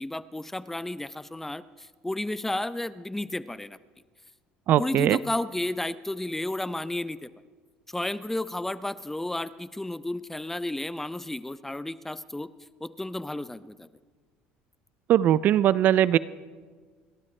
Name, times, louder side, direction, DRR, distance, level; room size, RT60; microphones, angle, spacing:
voice 1, 0.0-3.8 4.8-7.3 7.9-12.5 12.8-13.9, left 1 dB, 10° left, 15 dB, 0.5 m, -32 dB
voice 2, 4.7-5.2 15.1-16.2, right 11 dB, 55° right, 19 dB, 0.4 m, -20 dB
29.5 x 12.5 x 3.3 m, 1.5 s
supercardioid pair, 100°, 4 cm